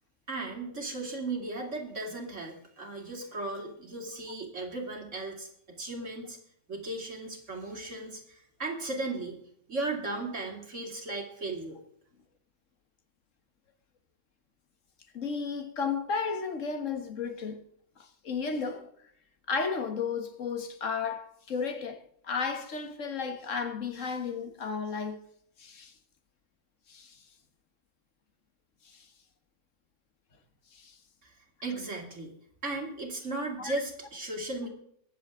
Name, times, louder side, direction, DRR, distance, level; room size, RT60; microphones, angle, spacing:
voice 1, 0.3-6.4 6.7-9.4 9.7-11.8 31.2-31.3 31.6-32.3 32.6-34.7, right 2 dB, 70° right, 3.3 m, -36 dB
voice 2, 15.1-17.6 18.0-18.9 19.5-25.2 25.6-25.9 26.9-27.2 28.9-29.1 30.7-31.0 33.6-33.8, left 5 dB, 80° left, 1.7 m, -33 dB
22.5 x 7.6 x 3.7 m
omnidirectional pair, 1.3 m